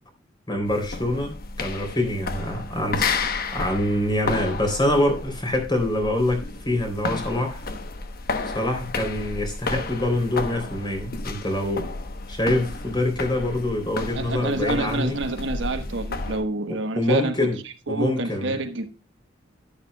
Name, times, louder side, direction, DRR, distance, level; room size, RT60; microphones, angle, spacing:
voice 1, 0.5-3.1 3.5-7.6 8.5-11.9 12.3-15.1 16.7-17.6 17.9-18.5, left 1 dB, 25° left, 3.4 m, -25 dB
sound 1, 0.6-16.5, left 3 dB, 50° left, 1.1 m, -32 dB
voice 2, 14.1-17.4 17.9-18.9, right 2 dB, 65° right, 1.2 m, -28 dB
11.0 x 11.0 x 2.3 m
head